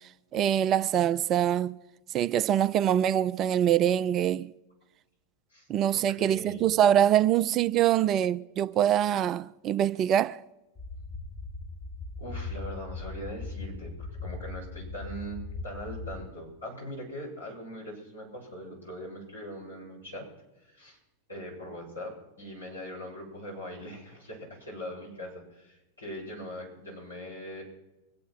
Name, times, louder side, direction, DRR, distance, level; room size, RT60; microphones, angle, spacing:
voice 1, 0.3-1.7 2.1-4.5 5.7-10.4, right 10 dB, 30° right, 0.4 m, -24 dB
voice 2, 5.9-6.7 12.2-20.3 20.6-21.0 21.3-27.6, equal, 85° left, 7.3 m, -41 dB
sound 1, 10.8-16.3, left 3 dB, 15° left, 1.6 m, -39 dB
24.0 x 8.6 x 6.1 m
figure-of-eight pair, 90°, 0 cm